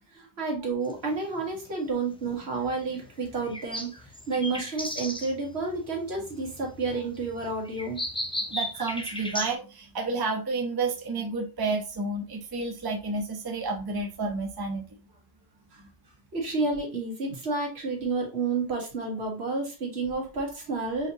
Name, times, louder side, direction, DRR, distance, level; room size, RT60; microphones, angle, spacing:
voice 1, 0.4-8.0 15.7-15.8 16.3-21.1, right 3 dB, 75° right, -1 dB, 1.6 m, -30 dB
sound 1, 0.8-9.5, equal, 10° left, 0.4 m, -37 dB
voice 2, 8.5-15.0 15.8-15.9, right 3 dB, 25° right, 0 dB, 0.7 m, -30 dB
4.9 x 2.9 x 2.7 m, 0.32 s
omnidirectional pair, 1.1 m